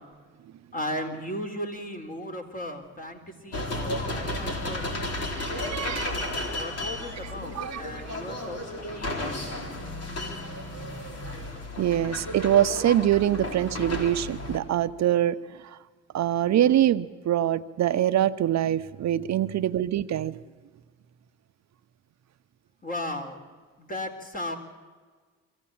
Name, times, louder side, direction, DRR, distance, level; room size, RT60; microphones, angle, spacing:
voice 1, 0.7-5.2 5.5-6.0 6.5-9.6 22.8-23.4 23.8-24.6, left 1 dB, 30° left, 4 dB, 3.8 m, -36 dB
sound 1, 3.5-14.6, left 1 dB, 55° left, 4.0 m, -33 dB
voice 2, 5.4-6.1 7.2-7.8 8.1-8.2 11.8-15.4 16.1-20.4, right 11 dB, 65° right, 11 dB, 0.8 m, -24 dB
24.5 x 15.5 x 8.6 m, 1.5 s
cardioid pair, 90°, 30 cm